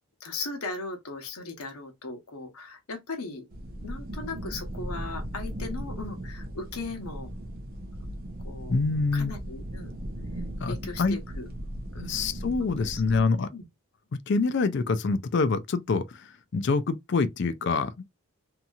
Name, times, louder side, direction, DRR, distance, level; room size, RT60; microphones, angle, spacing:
voice 1, 0.2-3.5 3.8-7.3 8.4-8.8 9.1-9.9 10.7-11.5 11.9-12.1 12.8-13.2 13.5-13.6, left 3 dB, 80° left, 0.9 m, -38 dB
sound 1, 3.5-13.2, equal, 40° right, 0.6 m, -37 dB
voice 2, 8.7-9.3 10.6-11.2 12.0-13.5 14.3-18.0, left 4 dB, 50° left, 0.4 m, -26 dB
2.8 x 2.7 x 2.3 m
head